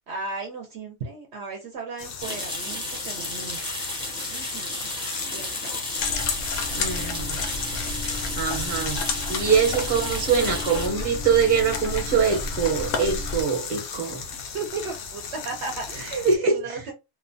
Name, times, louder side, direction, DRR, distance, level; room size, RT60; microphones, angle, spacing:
voice 1, 0.1-3.6 4.3-4.9 5.3-6.1 14.5-16.9, right 4 dB, 65° right, 0.8 m, -35 dB
sound 1, 2.0-16.4, left 6 dB, 60° left, 0.6 m, -36 dB
sound 2, 2.2-10.9, equal, 10° right, 0.3 m, -34 dB
sound 3, 6.0-13.4, left 4 dB, 80° left, 0.9 m, -31 dB
voice 2, 6.7-7.4 8.4-9.0 9.3-14.2 16.2-16.8, right 6 dB, 40° right, 0.9 m, -23 dB
2.7 x 2.1 x 2.5 m
omnidirectional pair, 1.3 m